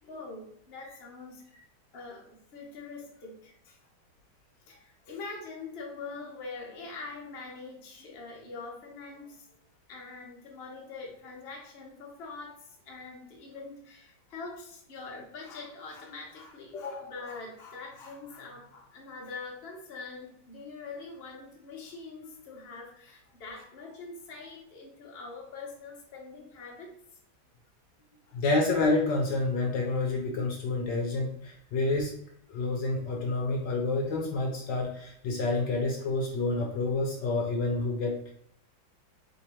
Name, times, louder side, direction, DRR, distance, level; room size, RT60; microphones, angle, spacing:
voice 1, 0.0-1.5 1.9-3.9 4.6-9.5 9.9-26.9 28.3-28.4, left 4 dB, 40° left, -1 dB, 0.9 m, -44 dB
voice 2, 28.3-32.1 32.5-38.3, left 2 dB, 70° left, 0 dB, 1.2 m, -28 dB
3.5 x 2.9 x 4.2 m, 0.70 s
omnidirectional pair, 2.1 m